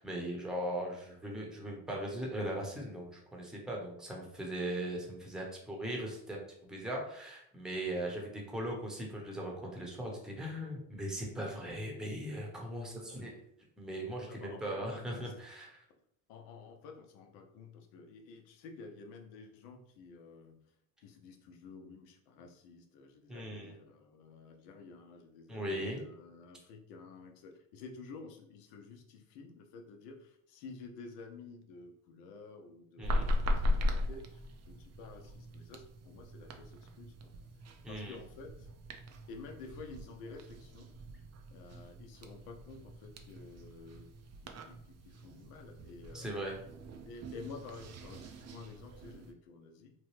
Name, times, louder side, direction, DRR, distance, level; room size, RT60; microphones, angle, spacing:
voice 1, 0.0-13.3 13.8-15.8 23.3-23.7 25.5-26.0 33.0-33.3 37.8-38.2 46.1-46.6, right 1 dB, ahead, -1 dB, 0.8 m, -39 dB
voice 2, 14.3-15.3 16.3-20.6 21.0-37.3 37.9-38.7 39.3-40.9 41.5-44.1 44.4-46.3 47.1-49.9, left 4 dB, 80° left, 4 dB, 0.7 m, -51 dB
sound 1, 33.0-49.3, left 1 dB, 40° right, 0.5 m, -39 dB
3.0 x 2.2 x 3.1 m, 0.71 s
supercardioid pair, 80°, 41 cm